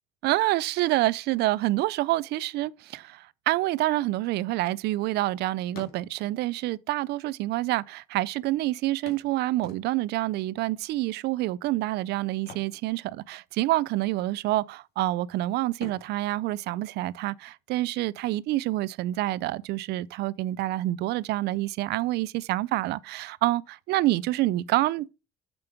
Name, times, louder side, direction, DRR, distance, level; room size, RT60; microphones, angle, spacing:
voice 1, 0.2-25.1, right 17 dB, 75° right, 0.4 m, -27 dB
sound 1, 4.3-5.3 5.6-6.5 7.4-7.5 7.7-7.8 9.1-10.2 12.3-13.6 13.9-14.1 14.6-15.2 15.7-17.5 19.5-19.6 20.0-20.1, left 3 dB, 70° left, 2.0 m, -48 dB
7.0 x 5.3 x 4.5 m
cardioid pair, 110°, 17 cm